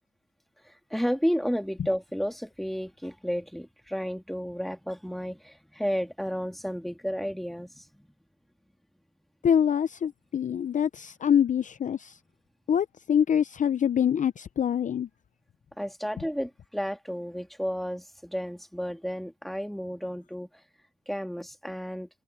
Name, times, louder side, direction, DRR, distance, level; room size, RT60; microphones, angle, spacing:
voice 1, 0.6-8.1 15.8-20.5 21.1-22.1, equal, ahead, 2.7 m, -32 dB
voice 2, 9.4-12.1 12.7-15.1, left 8 dB, 40° left, 0.5 m, -25 dB
cardioid pair, 90°, 20 cm